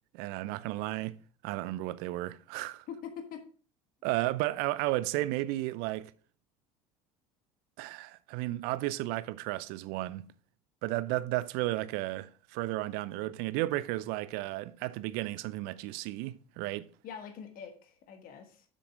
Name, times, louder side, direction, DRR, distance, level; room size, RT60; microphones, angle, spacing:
voice 1, 0.1-1.2 1.4-2.9 4.0-6.1 7.8-10.3 10.8-16.9, right 17 dB, 60° right, 0.6 m, -33 dB
voice 2, 2.9-3.5 17.0-18.6, left 7 dB, 50° left, 1.5 m, -44 dB
7.6 x 6.7 x 3.6 m
hypercardioid pair, 70°, 19 cm